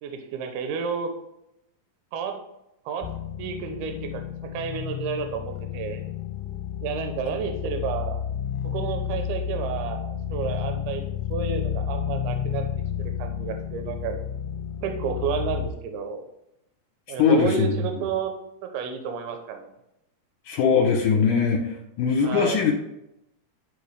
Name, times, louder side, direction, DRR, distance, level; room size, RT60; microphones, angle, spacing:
voice 1, 0.0-1.1 2.1-2.4 2.9-3.1 3.4-6.0 6.8-8.2 8.6-11.0 11.3-12.6 13.0-14.2 14.8-16.2 17.1-18.3 18.6-19.7 22.2-22.6, right 6 dB, 85° right, 5 dB, 2.7 m, -31 dB
sound 1, 3.0-15.7, left 9 dB, 90° left, 2.7 m, -31 dB
voice 2, 17.2-17.8 20.5-22.7, left 6 dB, 70° left, 0 dB, 2.1 m, -21 dB
10.5 x 4.7 x 3.3 m, 0.84 s
omnidirectional pair, 4.6 m